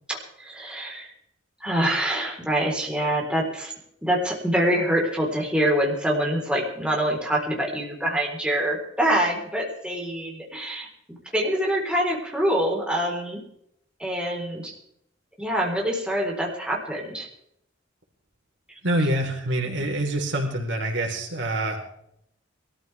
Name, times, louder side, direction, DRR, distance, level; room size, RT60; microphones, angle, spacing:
voice 1, 0.1-1.1 1.6-3.7 4.0-13.4 14.0-14.7 15.4-17.3, right 1 dB, 5° right, -2 dB, 3.9 m, -25 dB
voice 2, 18.8-21.8, right 1 dB, 70° right, 1 dB, 4.0 m, -26 dB
22.5 x 14.0 x 3.4 m, 0.72 s
head